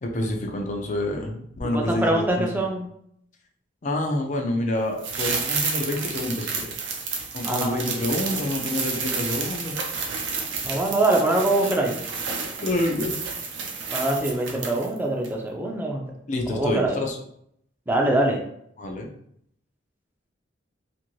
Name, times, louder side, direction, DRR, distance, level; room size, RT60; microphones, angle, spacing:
voice 1, 0.0-2.6 3.8-6.8 7.3-9.7 12.6-13.2 16.3-17.2 18.8-19.1, left 1 dB, 40° left, 2 dB, 0.5 m, -27 dB
voice 2, 1.7-2.9 7.4-7.6 10.6-11.9 13.9-16.0 16.5-17.0 17.9-18.4, right 2 dB, 10° right, 0 dB, 0.4 m, -23 dB
sound 1, 5.0-15.0 15.2-15.3, right 5 dB, 70° right, 0.6 m, -30 dB
2.6 x 2.6 x 3.0 m, 0.71 s
head